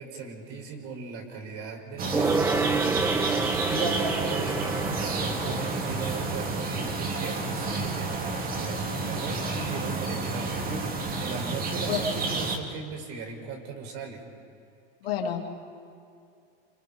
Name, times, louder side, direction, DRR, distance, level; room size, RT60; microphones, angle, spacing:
voice 1, 0.0-4.6 5.0-14.2, right 4 dB, 60° right, 2 dB, 5.7 m, -38 dB
sound 1, 2.0-12.6, right 3 dB, 30° right, 2.4 m, -30 dB
Gong, 2.1-8.0 8.3-8.4, right 3 dB, 5° right, 0.6 m, -30 dB
voice 2, 15.0-15.4, left 9 dB, 80° left, 1 dB, 2.9 m, -29 dB
28.5 x 27.5 x 4.4 m, 2.5 s
hypercardioid pair, 105°, 29 cm